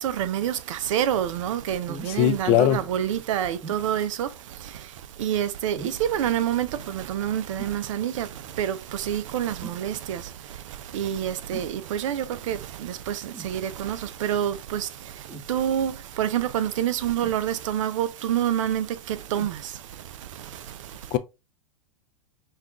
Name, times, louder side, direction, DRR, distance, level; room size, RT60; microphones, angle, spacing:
voice 1, 0.0-21.1, right 10 dB, 65° right, 0.5 m, -28 dB
sound 1, 1.9-2.2 3.6-3.9 5.7-6.1 7.6-7.8 9.6-9.9 11.5-11.8 13.3-13.6 15.3-15.5 17.2-17.8 19.3-19.6 20.4-20.5, right 3 dB, 5° right, 1.1 m, -41 dB
voice 2, 2.1-2.9 21.1-21.2, left 13 dB, 35° left, 0.4 m, -21 dB
5.5 x 2.4 x 2.3 m
hypercardioid pair, 100°, 18 cm